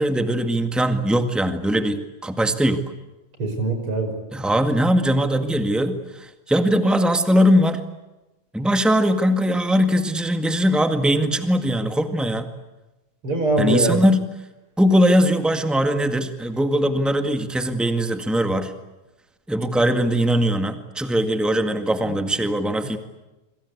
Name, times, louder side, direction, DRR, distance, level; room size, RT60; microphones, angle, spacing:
voice 1, 0.0-2.8 4.3-7.8 8.5-12.5 13.6-14.3 14.8-18.7 19.5-23.0, equal, ahead, 7 dB, 0.4 m, -20 dB
voice 2, 3.4-4.1 13.2-14.0, right 2 dB, 40° right, 5 dB, 6.0 m, -22 dB
26.5 x 25.5 x 8.2 m, 1.0 s
omnidirectional pair, 3.9 m